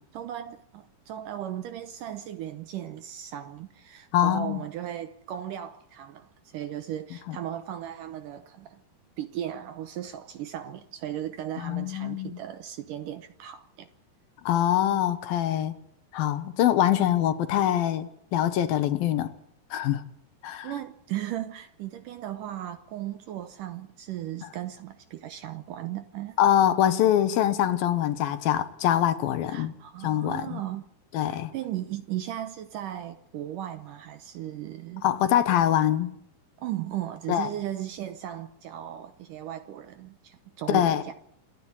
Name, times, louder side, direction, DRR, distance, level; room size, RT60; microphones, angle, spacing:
voice 1, 0.1-8.8 9.2-13.9 20.6-26.4 29.5-30.8 31.2-35.1 36.6-41.1, right 12 dB, 70° right, 2.1 m, -36 dB
voice 2, 4.1-4.6 11.6-12.4 14.5-15.8 16.1-19.3 19.7-20.0 20.4-20.7 26.4-29.7 30.0-30.6 31.1-31.5 35.0-36.1 37.3-37.5 40.7-41.0, left 11 dB, 70° left, 2.8 m, -24 dB
27.5 x 10.5 x 9.8 m
omnidirectional pair, 4.6 m